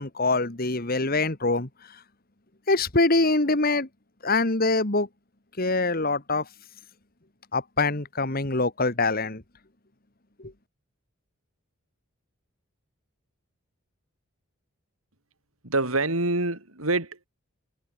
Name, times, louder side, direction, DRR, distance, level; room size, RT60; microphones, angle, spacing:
voice 1, 0.0-2.0 2.7-3.9 4.2-5.1 5.6-6.5 7.5-9.4 10.4-10.5, left 3 dB, 45° left, 2.1 m, -24 dB
voice 2, 15.6-17.3, right 2 dB, 85° right, 5.0 m, -26 dB
head